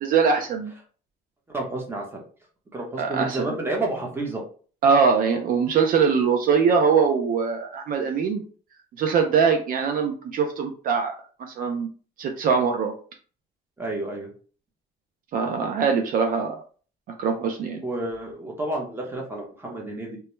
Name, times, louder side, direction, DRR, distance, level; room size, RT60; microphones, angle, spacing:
voice 1, 0.0-0.7 3.0-3.4 4.8-8.4 9.0-11.1 11.4-11.9 12.2-12.9 15.3-16.6 17.2-17.8, right 6 dB, 55° right, 3 dB, 0.4 m, -22 dB
voice 2, 1.5-2.2 2.7-4.4 13.8-14.3 17.8-20.2, right 2 dB, 15° right, -1 dB, 0.9 m, -30 dB
2.2 x 2.1 x 3.0 m, 0.41 s
cardioid pair, 110°, 17 cm